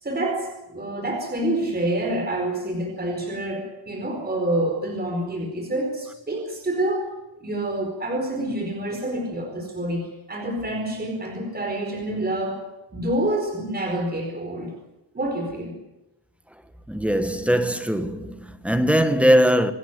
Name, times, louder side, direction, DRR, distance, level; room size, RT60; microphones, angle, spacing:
voice 1, 0.0-7.1 7.4-12.6 12.9-14.7 15.1-15.8, right 1 dB, 20° right, 4.6 m, -27 dB
voice 2, 16.9-19.7, equal, 5° right, 1.5 m, -20 dB
26.5 x 14.5 x 9.5 m
wide cardioid pair, 170°, 45 cm